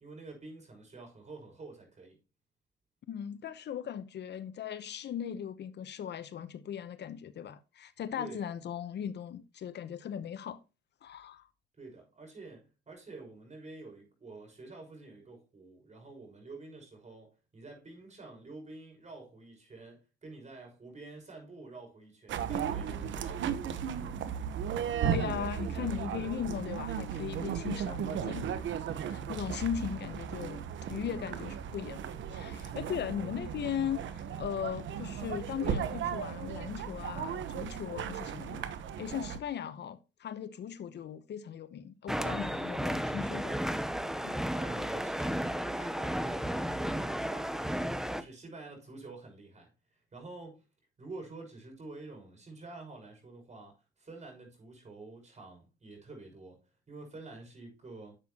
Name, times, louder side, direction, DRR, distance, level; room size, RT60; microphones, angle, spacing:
voice 1, 0.0-2.2 8.2-8.4 11.8-24.0 44.5-50.6 51.0-56.6 56.9-58.1, right 3 dB, 35° right, 6.5 m, -48 dB
voice 2, 3.1-10.6 11.0-11.5 25.1-28.5 28.9-30.6 30.9-32.0 32.3-38.7 39.0-43.6 44.2-44.4, left 9 dB, 60° left, 0.9 m, -38 dB
sound 1, 22.3-39.4, right 8 dB, 70° right, 1.1 m, -36 dB
sound 2, 42.1-48.2, equal, ahead, 0.8 m, -33 dB
11.0 x 7.9 x 2.9 m
cardioid pair, 90°, 20 cm